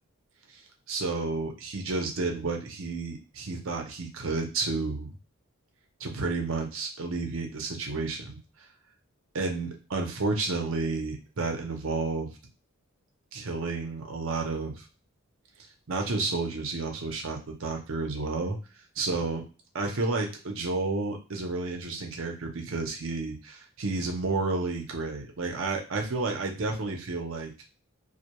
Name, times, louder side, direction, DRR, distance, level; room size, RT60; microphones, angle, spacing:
voice 1, 0.9-5.1 6.0-8.4 9.3-12.3 13.3-14.8 15.9-18.6 19.0-19.4 19.7-27.5, right 3 dB, 65° right, 2 dB, 0.7 m, -31 dB
2.3 x 2.2 x 2.9 m, 0.34 s
head